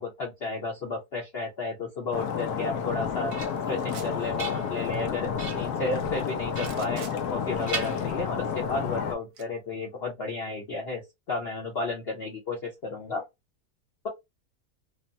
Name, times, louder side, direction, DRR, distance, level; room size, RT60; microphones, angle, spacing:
voice 1, 0.0-3.3 3.7-5.3 5.5-11.0 11.3-13.2, left 3 dB, 50° left, 0.8 m, -32 dB
Stream, 2.1-9.2, left 6 dB, 75° left, 1.1 m, -31 dB
sound 1, 2.8-3.8 4.2-5.0 5.4-5.8 6.5-7.4 7.7-8.6, right 4 dB, 35° right, 0.5 m, -39 dB
sound 2, 3.8-4.2 6.6-7.2 9.3-9.4, right 8 dB, 70° right, 1.1 m, -45 dB
3.3 x 2.1 x 2.5 m
omnidirectional pair, 1.8 m